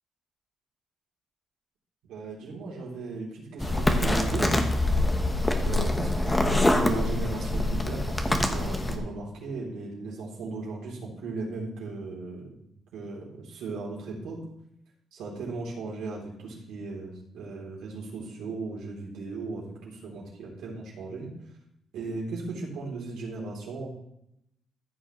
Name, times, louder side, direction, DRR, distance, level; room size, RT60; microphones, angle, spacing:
voice 1, 2.0-4.5 5.6-12.7 12.9-14.4 15.1-21.3 21.9-23.9, right 3 dB, 85° right, -4 dB, 3.4 m, -36 dB
sound 1, 3.6-9.0, left 1 dB, 15° left, 1.2 m, -25 dB
14.0 x 6.4 x 3.2 m, 0.77 s
cardioid pair, 90°, 0 cm